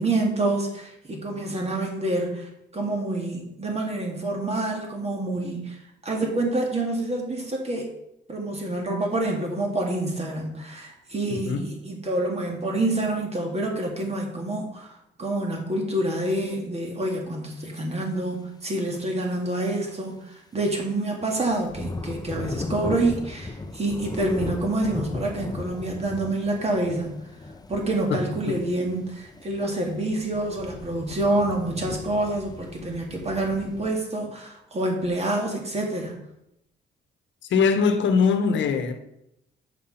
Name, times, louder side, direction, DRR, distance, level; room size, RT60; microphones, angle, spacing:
voice 1, 0.0-7.9 8.3-27.2 27.7-36.2, right 2 dB, 30° right, 2.4 m, -27 dB
sound 1, 20.6-20.8 21.2-33.9, left 2 dB, 20° left, 0.7 m, -37 dB
voice 2, 28.1-28.6 37.5-39.0, left 5 dB, 70° left, 1.1 m, -22 dB
7.4 x 5.6 x 5.7 m
cardioid pair, 90°, 20 cm